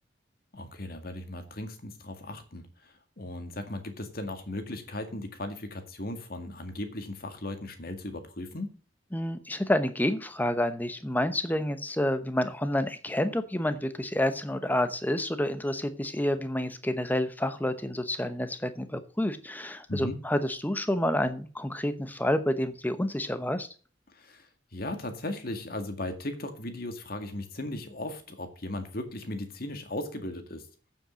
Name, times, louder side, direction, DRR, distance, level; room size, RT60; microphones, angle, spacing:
voice 1, 0.5-8.8 19.9-20.2 24.1-30.7, left 1 dB, 50° left, 7 dB, 2.0 m, -37 dB
voice 2, 9.1-23.7, left 1 dB, 10° left, 11 dB, 0.9 m, -29 dB
8.6 x 7.6 x 6.3 m, 0.37 s
head